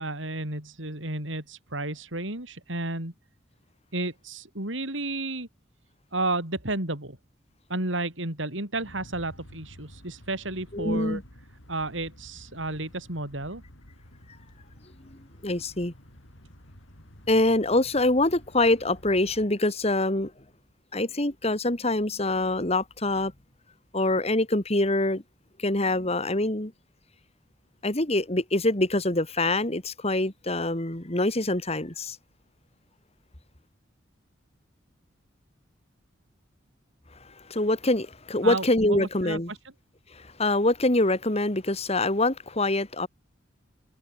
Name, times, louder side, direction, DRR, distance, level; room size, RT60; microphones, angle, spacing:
voice 1, 0.0-3.1 3.9-5.5 6.1-7.2 7.7-11.2 11.7-13.6 38.4-39.6, right 2 dB, 80° right, 6.0 m, -32 dB
sound 1, 8.8-19.5, equal, 90° left, 7.6 m, -51 dB
voice 2, 10.7-11.2 15.4-15.9 17.3-20.3 20.9-23.3 23.9-25.2 25.6-26.7 27.8-32.2 37.2-39.5 40.1-43.1, left 2 dB, 35° left, 2.6 m, -25 dB
head